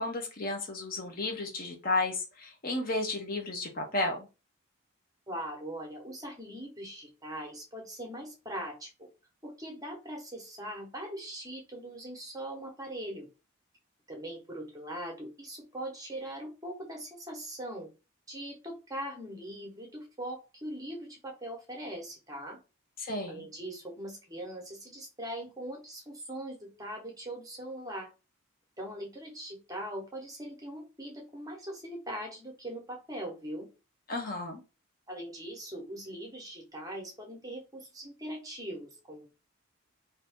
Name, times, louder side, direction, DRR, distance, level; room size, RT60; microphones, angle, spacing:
voice 1, 0.0-4.3 23.0-23.5 34.1-34.6, left 2 dB, 40° left, 2 dB, 0.6 m, -33 dB
voice 2, 5.3-9.1 9.4-13.3 14.1-17.9 18.3-22.6 23.3-28.1 28.8-33.7 35.1-39.3, right 1 dB, 15° right, 1 dB, 0.9 m, -41 dB
2.6 x 2.6 x 3.5 m, 0.30 s
head